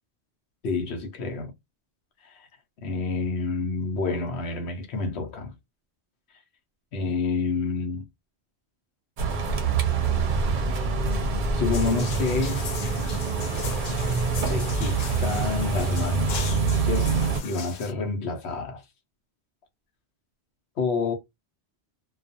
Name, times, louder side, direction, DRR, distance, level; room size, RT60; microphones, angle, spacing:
voice 1, 0.6-1.5 2.2-2.5 2.8-5.5 6.9-8.1 11.1-12.7 14.5-18.8 20.8-21.1, left 4 dB, 80° left, 1.0 m, -29 dB
sound 1, 9.2-17.4, right 4 dB, 60° right, 0.6 m, -25 dB
sound 2, 11.7-17.9, left 6 dB, 55° left, 0.5 m, -38 dB
2.3 x 2.3 x 2.5 m
omnidirectional pair, 1.1 m